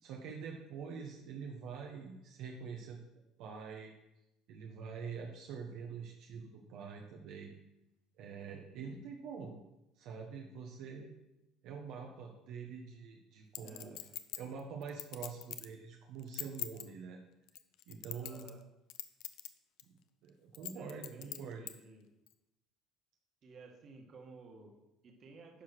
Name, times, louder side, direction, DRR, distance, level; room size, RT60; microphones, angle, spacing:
voice 1, 0.0-3.0 3.4-3.9 4.5-7.5 8.2-9.6 10.0-11.1 11.6-14.0 14.4-17.2 17.9-18.5 19.9-21.6, right 6 dB, 70° right, 1 dB, 1.2 m, -45 dB
Chink clink, 13.5-15.7 16.2-16.8 17.5-18.6 18.9-19.5 19.8-19.9 20.5-21.7 22.3-22.4, left 14 dB, 70° left, 0.7 m, -42 dB
voice 2, 13.6-14.1 18.2-18.6 20.7-22.1 23.4-25.6, right 3 dB, 40° right, 2 dB, 1.9 m, -55 dB
10.0 x 5.0 x 6.1 m, 0.92 s
cardioid pair, 130°, 0 cm